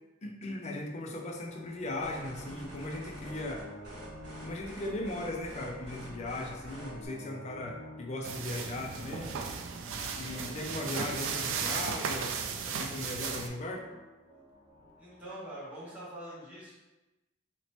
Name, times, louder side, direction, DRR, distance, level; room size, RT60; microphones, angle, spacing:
voice 1, 0.2-3.7 4.4-9.4 10.2-12.3 12.7-13.9, left 2 dB, 35° left, 1 dB, 0.4 m, -38 dB
sound 1, 1.3-15.3, equal, 25° right, 0.5 m, -50 dB
sound 2, 2.0-7.1, equal, 65° right, 1.3 m, -47 dB
sound 3, 8.2-13.5, right 6 dB, 85° right, 0.3 m, -35 dB
voice 2, 15.0-16.8, right 1 dB, 5° right, -11 dB, 1.0 m, -44 dB
3.0 x 2.9 x 2.9 m, 1.1 s
head